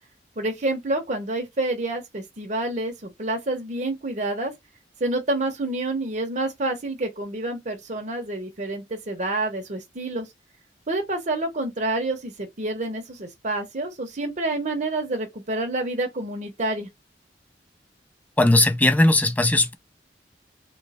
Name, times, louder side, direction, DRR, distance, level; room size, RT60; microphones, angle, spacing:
voice 1, 0.4-4.5 5.0-10.3 10.9-16.9, right 2 dB, 45° right, 1.0 m, -28 dB
voice 2, 18.4-19.8, left 2 dB, 10° left, 0.5 m, -18 dB
3.2 x 3.1 x 4.2 m
head